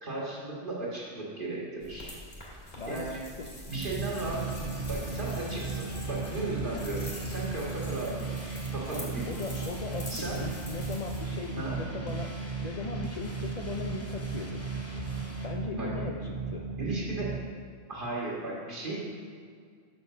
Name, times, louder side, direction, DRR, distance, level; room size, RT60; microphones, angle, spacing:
voice 1, 0.0-2.1 2.9-3.2 3.7-9.3 9.5-9.6 10.1-10.4 10.7-10.9 11.6-11.8 15.7-15.9 16.8-17.3 17.9-19.0, right 2 dB, 45° right, -6 dB, 1.9 m, -36 dB
sound 1, 1.8-11.2, left 1 dB, 35° left, 1.9 m, -45 dB
voice 2, 2.8-3.5 8.9-11.6 12.0-14.6 15.4-16.6, left 5 dB, 85° left, 0 dB, 0.3 m, -39 dB
sound 2, 3.7-17.4, right 5 dB, 15° right, 1.5 m, -36 dB
sound 3, 4.0-15.5, left 1 dB, 15° left, 0.6 m, -45 dB
5.6 x 5.2 x 6.6 m, 2.1 s
omnidirectional pair, 1.3 m